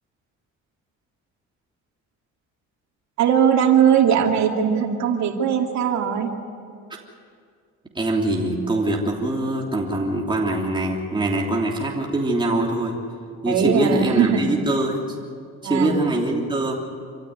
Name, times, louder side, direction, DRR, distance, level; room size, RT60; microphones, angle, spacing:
voice 1, 3.2-6.3 13.5-14.5 15.6-16.0, right 8 dB, 70° right, 3 dB, 2.6 m, -19 dB
voice 2, 7.9-13.0 13.4-15.0 15.6-16.8, right 2 dB, 15° right, -2 dB, 3.3 m, -23 dB
27.0 x 15.5 x 9.6 m, 2.3 s
cardioid pair, 95°, 29 cm